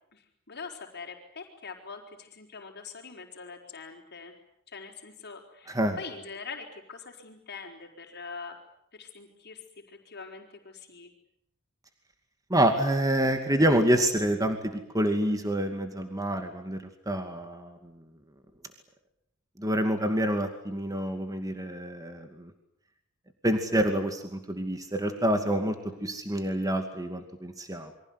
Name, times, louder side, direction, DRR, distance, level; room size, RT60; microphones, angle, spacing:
voice 1, 0.1-4.3 4.7-8.6 8.9-11.1 25.9-26.1, left 5 dB, 50° left, 2 dB, 4.6 m, -44 dB
voice 2, 5.7-6.0 12.5-17.8 19.6-22.5 23.4-27.9, right 1 dB, 15° right, 6 dB, 2.4 m, -27 dB
28.5 x 24.0 x 8.2 m, 0.75 s
head